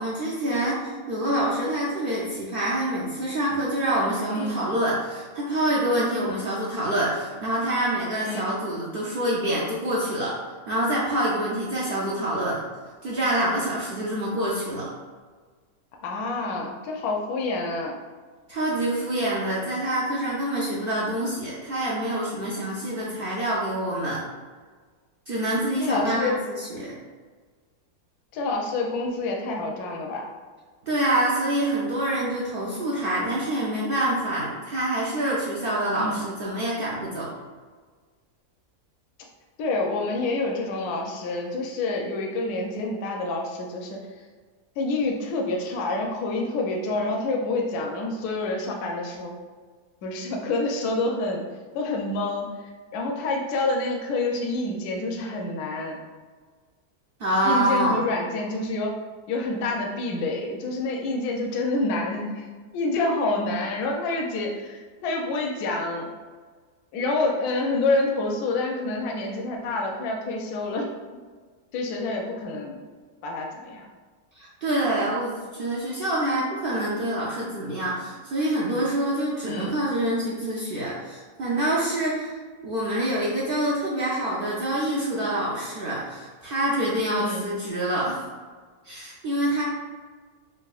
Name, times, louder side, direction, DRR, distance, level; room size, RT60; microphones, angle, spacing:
voice 1, 0.0-10.3 10.7-12.6 13.0-14.9 18.5-24.2 25.3-26.9 30.8-37.3 57.2-58.0 74.4-82.3 82.6-88.2 88.8-89.6, right 1 dB, 80° right, -6 dB, 0.5 m, -26 dB
voice 2, 4.3-4.6 8.2-8.5 16.0-17.9 25.8-26.4 28.3-30.3 36.0-36.2 39.6-44.0 44.8-49.3 50.0-51.4 51.7-56.0 57.4-58.9 59.3-62.5 62.7-66.1 66.9-70.9 71.7-72.8 73.2-73.9 79.4-79.7 87.2-87.5, left 2 dB, 80° left, 0 dB, 1.1 m, -27 dB
4.7 x 2.4 x 2.3 m, 1.5 s
omnidirectional pair, 1.6 m